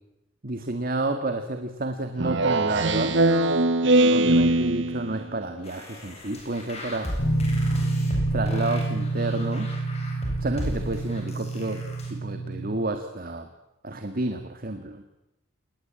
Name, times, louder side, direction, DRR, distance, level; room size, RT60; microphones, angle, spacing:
voice 1, 0.4-3.2 4.1-7.1 8.3-9.8 10.4-11.8 12.1-13.5 13.8-15.0, right 2 dB, 45° right, 7 dB, 1.8 m, -30 dB
Speech synthesizer, 2.2-5.2, right 2 dB, 65° right, 1.4 m, -21 dB
sound 1, 5.6-12.1, equal, 30° left, 7.9 m, -35 dB
sound 2, 7.2-12.8, right 2 dB, 80° left, 6.9 m, -28 dB
28.0 x 20.0 x 8.9 m, 0.89 s
head